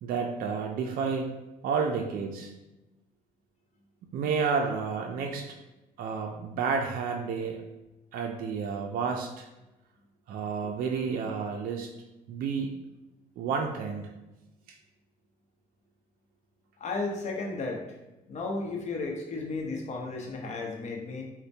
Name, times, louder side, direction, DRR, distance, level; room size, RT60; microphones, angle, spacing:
voice 1, 0.0-1.3 1.6-2.5 4.1-5.5 6.0-7.6 8.1-9.5 10.3-11.9 12.3-12.7 13.4-14.1, right 5 dB, 55° right, 2 dB, 0.4 m, -30 dB
voice 2, 16.8-17.8 18.3-21.2, left 3 dB, 45° left, 0 dB, 0.7 m, -33 dB
4.2 x 2.1 x 2.7 m, 1.0 s
cardioid pair, 110°, 17 cm